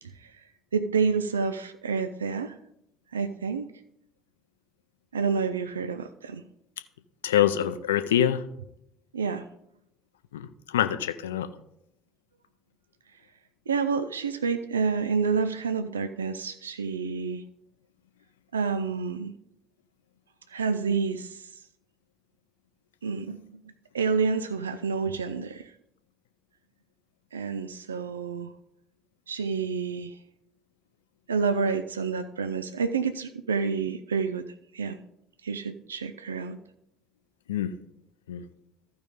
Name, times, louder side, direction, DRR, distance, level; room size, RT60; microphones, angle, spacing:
voice 1, 0.7-2.6 3.1-3.7 5.1-6.4 9.1-9.5 13.7-17.4 18.5-19.3 20.5-21.5 23.0-23.4 23.9-25.7 27.3-28.5 29.3-30.2 31.3-34.5 34.7-35.0 35.4-36.6, right 5 dB, 85° right, 9 dB, 0.4 m, -28 dB
voice 2, 7.2-8.4 10.3-11.5 37.5-37.8 38.3-38.4, left 11 dB, 80° left, 11 dB, 0.4 m, -25 dB
14.5 x 5.2 x 3.6 m, 0.78 s
figure-of-eight pair, 60°, 0 cm